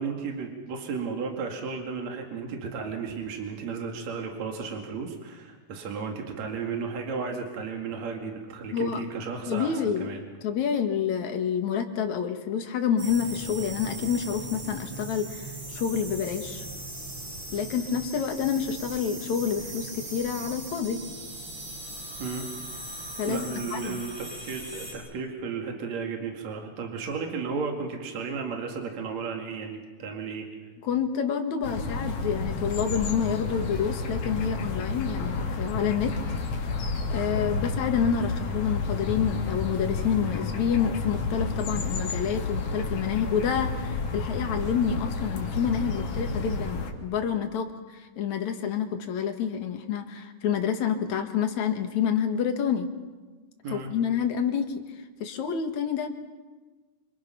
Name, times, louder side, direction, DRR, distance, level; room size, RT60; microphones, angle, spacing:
voice 1, 0.0-10.2 22.2-22.5 23.3-30.5 53.6-53.9, right 5 dB, 65° right, 2 dB, 3.5 m, -34 dB
voice 2, 9.5-10.1 10.4-16.6 17.5-21.0 23.2-23.5 23.7-24.0 30.8-36.2 37.1-52.9 53.7-54.7 55.2-56.1, left 7 dB, 70° left, 5 dB, 3.1 m, -28 dB
sound 1, 13.0-24.9, right 2 dB, 40° right, 6.7 m, -39 dB
sound 2, 31.6-46.9, left 3 dB, 90° left, 3.7 m, -31 dB
27.0 x 26.5 x 5.9 m, 1.3 s
omnidirectional pair, 3.5 m